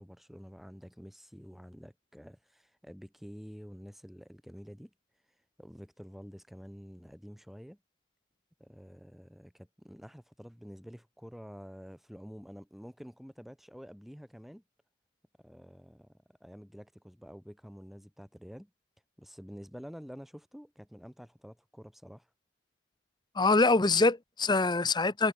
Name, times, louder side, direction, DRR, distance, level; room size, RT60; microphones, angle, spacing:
voice 1, 0.0-4.9 5.6-7.8 8.6-14.6 15.4-18.7 19.2-22.3, equal, ahead, 7.9 m, -49 dB
voice 2, 23.4-25.3, left 3 dB, 20° left, 0.7 m, -24 dB
head